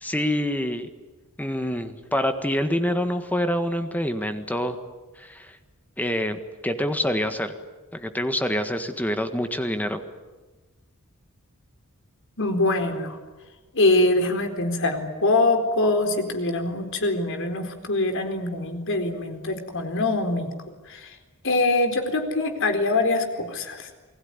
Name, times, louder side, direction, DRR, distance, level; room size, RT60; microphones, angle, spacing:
voice 1, 0.0-0.9 1.4-4.8 5.2-5.6 6.0-7.5 7.9-10.0, equal, 5° left, 8 dB, 1.6 m, -26 dB
voice 2, 12.4-13.2 13.7-20.5 20.9-21.1 21.4-23.9, left 2 dB, 60° left, 6 dB, 4.1 m, -23 dB
28.0 x 20.5 x 9.7 m, 1.2 s
head